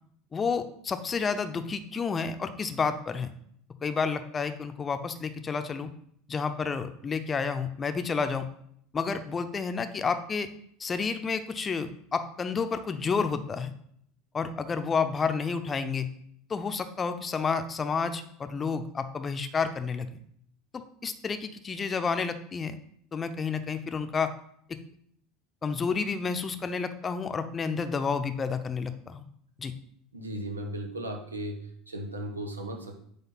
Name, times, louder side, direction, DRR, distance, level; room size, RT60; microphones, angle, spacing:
voice 1, 0.3-3.3 3.8-5.9 6.3-8.5 8.9-10.5 10.8-13.7 14.3-16.1 16.5-20.2 20.7-22.8 23.1-24.3 24.7-24.8 25.6-29.3 29.6-29.7, left 5 dB, 25° left, 9 dB, 0.8 m, -30 dB
voice 2, 30.1-31.6 31.9-33.1, right 1 dB, 90° right, 3 dB, 1.1 m, -36 dB
8.9 x 3.2 x 5.9 m, 0.69 s
figure-of-eight pair, 75°, 0 cm